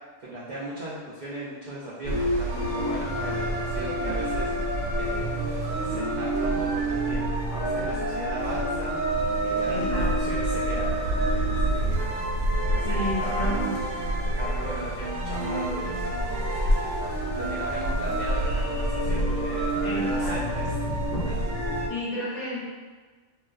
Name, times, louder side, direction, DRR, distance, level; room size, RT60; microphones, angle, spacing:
voice 1, 0.2-4.5 4.9-9.0 9.4-12.2 12.5-13.6 14.3-16.6 17.3-21.5, right 1 dB, 65° right, -8 dB, 0.4 m, -37 dB
sound 1, 2.0-21.9, right 1 dB, 85° right, 0.9 m, -27 dB
voice 2, 9.7-10.4 12.8-13.8 19.8-20.6 21.9-22.6, left 1 dB, 45° left, -9 dB, 0.7 m, -32 dB
2.5 x 2.2 x 2.3 m, 1.4 s
omnidirectional pair, 1.3 m